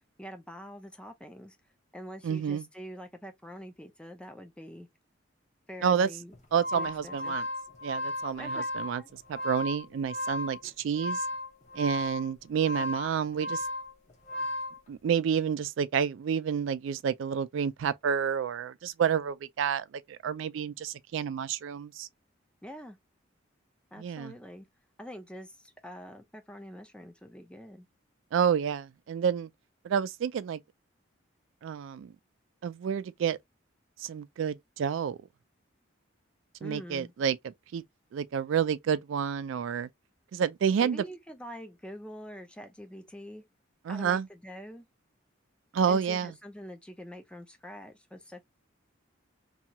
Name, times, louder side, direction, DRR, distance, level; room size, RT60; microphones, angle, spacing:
voice 1, 0.2-1.6 1.9-4.9 5.7-6.3 6.7-7.4 8.4-8.7 9.0-9.1 12.8-12.9 22.6-23.0 23.9-24.7 25.0-27.9 36.6-37.1 40.8-43.5 43.9-44.9 45.9-48.4, equal, 5° left, 0.4 m, -45 dB
voice 2, 2.2-2.7 5.8-6.1 6.5-7.5 7.8-9.0 9.3-11.2 11.7-13.7 14.9-22.1 24.0-24.3 28.3-29.5 29.8-30.6 31.6-32.1 32.6-33.4 34.0-35.2 36.6-37.4 37.7-37.8 38.1-39.9 40.3-41.0 43.9-44.3 45.7-46.3, right 7 dB, 75° right, 0.3 m, -29 dB
sound 1, 6.3-14.8, left 1 dB, 35° left, 0.8 m, -35 dB
2.7 x 2.3 x 2.8 m
head